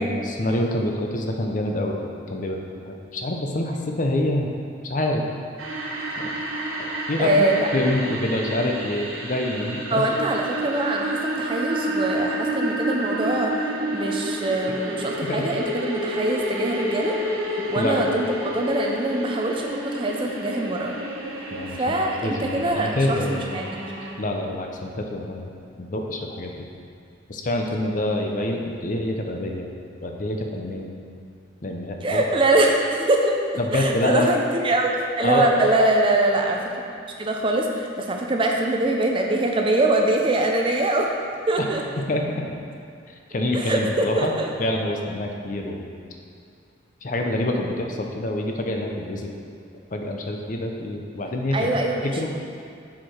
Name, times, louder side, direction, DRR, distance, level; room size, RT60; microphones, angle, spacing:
voice 1, 0.0-2.0 2.3-4.5 4.9-5.2 6.2-6.3 6.8-7.3 7.7-10.0 15.2-15.4 17.7-18.2 21.5-22.0 22.2-23.6 24.2-25.5 25.8-26.5 27.3-29.7 30.0-30.9 31.6-32.2 33.6-34.3 35.2-35.6 41.6-41.7 42.0-42.2 43.1-44.3 44.6-45.9 47.0-49.3 49.9-51.7 52.0-52.3, left 1 dB, 40° left, 2 dB, 0.6 m, -26 dB
sound 1, 5.6-24.1, right 1 dB, 85° right, 1.0 m, -30 dB
voice 2, 7.2-7.7 9.9-13.5 13.9-17.1 17.7-20.9 21.8-22.9 23.3-23.9 32.0-33.3 33.7-36.6 37.2-41.1 41.5-41.8 43.5-44.5 51.5-52.3, right 2 dB, 25° right, 1 dB, 0.5 m, -23 dB
7.3 x 4.7 x 4.4 m, 2.4 s
head